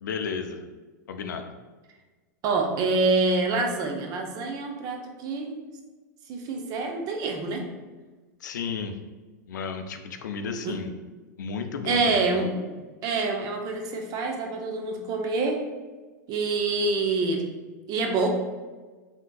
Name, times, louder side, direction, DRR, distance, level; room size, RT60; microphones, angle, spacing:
voice 1, 0.0-0.6 1.1-1.5 8.4-8.9 9.5-10.9 11.4-12.4, left 5 dB, 85° left, 7 dB, 0.4 m, -33 dB
voice 2, 2.4-5.6 6.3-7.6 10.6-10.8 11.9-12.6 13.0-15.7 16.3-17.4 17.9-18.3, right 3 dB, 40° right, 3 dB, 0.6 m, -26 dB
3.3 x 2.8 x 2.3 m, 1.3 s
hypercardioid pair, 110°, 10 cm